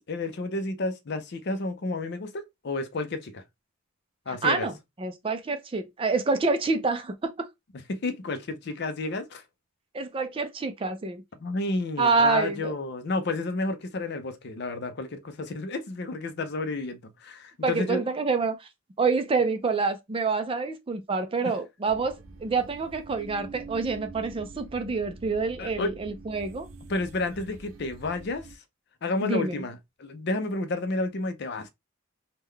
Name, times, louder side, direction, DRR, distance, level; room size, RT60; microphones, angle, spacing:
voice 1, 0.1-3.4 4.3-4.7 7.9-9.4 11.4-18.0 21.4-21.5 25.6-26.0 26.9-28.5 29.0-31.7, left 2 dB, 50° left, 0.5 m, -31 dB
voice 2, 4.3-4.7 5.0-7.5 9.9-11.2 12.0-12.8 17.6-18.7 19.0-26.7 29.2-29.6, right 4 dB, 25° right, 0.4 m, -27 dB
sound 1, 21.9-28.5, right 3 dB, 75° right, 0.6 m, -45 dB
3.6 x 2.2 x 3.2 m
head